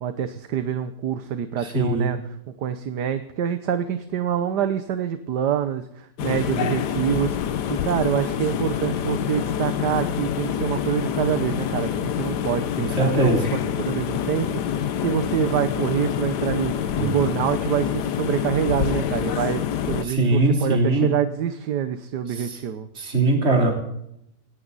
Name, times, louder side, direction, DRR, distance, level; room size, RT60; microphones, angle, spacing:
voice 1, 0.0-14.5 15.0-22.9, right 9 dB, 80° right, 10 dB, 1.6 m, -26 dB
voice 2, 1.6-2.1 13.0-13.5 17.0-17.1 20.0-21.1 22.3-22.6 23.0-23.7, right 2 dB, 40° right, 1 dB, 3.7 m, -21 dB
sound 1, 6.2-20.0, left 9 dB, 80° left, 1.5 m, -26 dB
20.5 x 17.5 x 4.1 m, 0.79 s
omnidirectional pair, 1.8 m